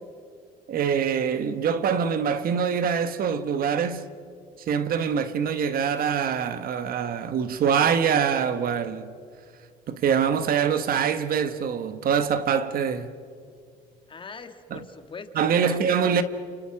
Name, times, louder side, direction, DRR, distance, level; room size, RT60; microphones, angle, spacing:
voice 1, 0.7-4.1 4.7-9.1 9.9-13.1 14.7-14.8 15.3-16.2, right 7 dB, 60° right, 1.4 m, -24 dB
voice 2, 14.1-16.2, left 4 dB, 30° left, 2.0 m, -42 dB
29.0 x 28.5 x 6.0 m
cardioid pair, 110°, 17 cm